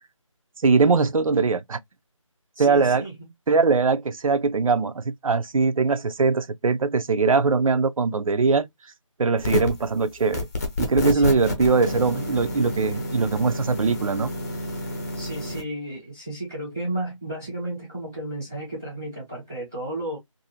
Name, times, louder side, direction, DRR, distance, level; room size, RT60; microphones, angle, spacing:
voice 1, 0.6-1.8 2.6-3.0 3.5-8.7 9.2-10.5 10.8-14.3, right 4 dB, 80° right, 0.4 m, -21 dB
voice 2, 2.6-3.3 11.1-11.3 15.1-20.2, right 1 dB, 5° right, 0.4 m, -33 dB
sound 1, 9.4-9.9 10.3-15.6, left 1 dB, 30° left, 0.7 m, -29 dB
2.6 x 2.6 x 2.7 m
figure-of-eight pair, 165°, 17 cm